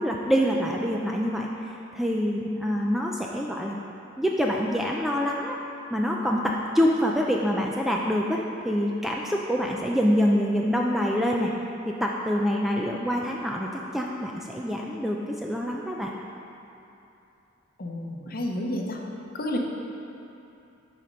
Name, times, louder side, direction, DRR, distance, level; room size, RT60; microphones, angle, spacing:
voice 1, 0.0-3.8 4.2-5.6 5.9-11.5 11.9-16.1, equal, ahead, -1 dB, 0.3 m, -26 dB
voice 2, 17.8-19.0 19.3-19.6, left 1 dB, 45° left, 1 dB, 0.8 m, -30 dB
9.5 x 4.3 x 5.2 m, 2.8 s
head